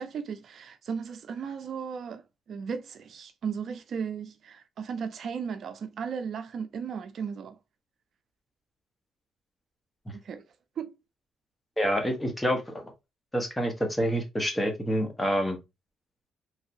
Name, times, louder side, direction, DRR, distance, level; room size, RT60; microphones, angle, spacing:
voice 1, 0.0-7.6 10.2-10.4 10.8-10.9, right 6 dB, 60° right, 0.4 m, -36 dB
voice 2, 11.8-12.8 13.3-15.6, equal, 10° left, 1.1 m, -27 dB
3.3 x 2.7 x 2.8 m
cardioid pair, 90°, 0 cm